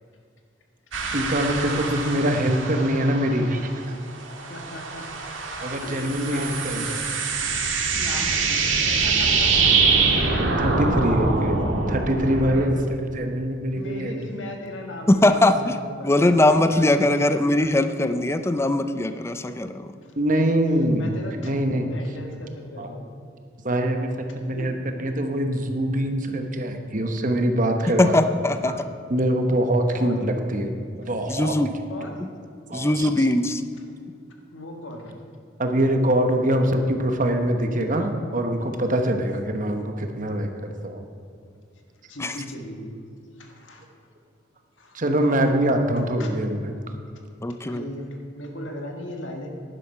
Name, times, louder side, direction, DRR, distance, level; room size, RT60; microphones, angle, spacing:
sound 1, 0.9-3.8 4.2-12.7, right 4 dB, 85° right, 1.7 m, -24 dB
voice 1, 1.1-3.8 5.6-6.8 10.6-11.6 11.9-14.2 16.7-17.2 20.2-21.1 21.4-21.9 22.8-22.9 23.6-24.1 24.4-28.2 28.6-28.8 29.1-30.7 31.0-31.6 32.7-33.3 35.6-40.5 40.8-41.0 44.9-46.7, right 1 dB, 45° right, 5 dB, 1.0 m, -24 dB
voice 2, 4.5-5.5 5.8-7.2 7.8-10.2 10.9-11.1 13.8-17.1 20.0-20.1 20.9-21.5 21.9-23.1 24.5-24.7 25.0-25.1 29.9-30.1 31.9-32.2 33.8-33.9 34.5-35.2 42.1-43.0 43.4-43.8 44.8-45.5 46.2-46.3 47.6-49.5, left 1 dB, 75° left, 2 dB, 1.7 m, -38 dB
voice 3, 15.1-15.7 16.0-19.9 28.0-28.7 31.3-31.7 32.7-33.6 42.2-42.3 47.4-47.8, left 1 dB, 15° left, 9 dB, 0.4 m, -20 dB
11.0 x 10.5 x 5.5 m, 2.3 s
head